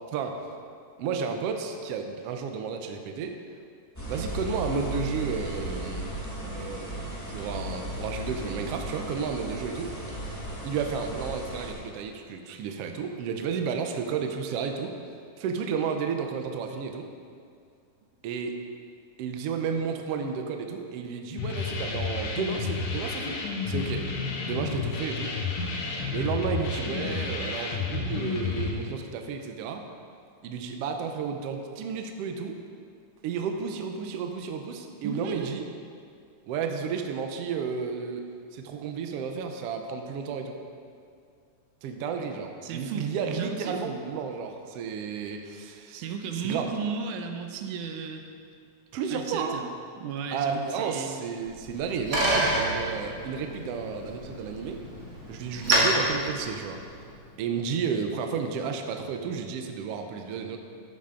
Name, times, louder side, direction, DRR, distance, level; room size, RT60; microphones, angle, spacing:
voice 1, 0.1-0.5 1.0-3.4 4.1-6.1 6.5-9.9 10.6-15.0 15.4-17.1 18.2-18.6 19.2-23.4 23.7-24.1 24.4-25.3 26.1-29.8 30.4-32.6 33.2-35.7 36.5-38.2 38.5-40.6 41.8-46.0 46.4-46.7 48.9-49.6 50.3-54.8 55.3-56.8 57.4-60.6, right 6 dB, 70° right, 5 dB, 1.5 m, -32 dB
sound 1, 3.9-11.7, right 1 dB, 10° left, 0.9 m, -36 dB
sound 2, 21.4-28.7, left 4 dB, 80° left, 2.6 m, -31 dB
voice 2, 35.0-35.5 42.6-44.0 45.9-48.2 49.1-49.7 50.0-51.2, right 6 dB, 90° right, 5 dB, 2.2 m, -35 dB
Bicycle, 51.5-57.2, right 1 dB, 35° right, 1.9 m, -29 dB
13.5 x 7.8 x 3.8 m, 2.3 s
omnidirectional pair, 3.5 m